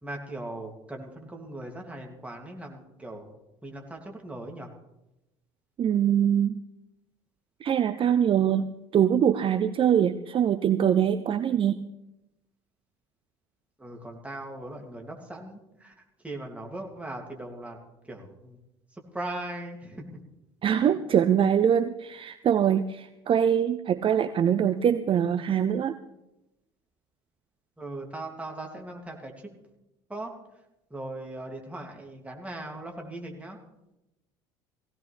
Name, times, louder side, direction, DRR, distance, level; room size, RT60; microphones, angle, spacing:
voice 1, 0.0-3.3 3.6-4.7 13.8-17.8 18.0-18.6 18.9-20.2 20.7-21.0 27.8-29.5 30.1-30.3 30.9-33.6, right 1 dB, 10° right, 0 dB, 2.9 m, -39 dB
voice 2, 5.8-6.6 7.6-11.8 20.6-26.0, right 9 dB, 40° right, 12 dB, 0.6 m, -23 dB
18.5 x 16.5 x 3.6 m, 0.92 s
figure-of-eight pair, 60°, 14 cm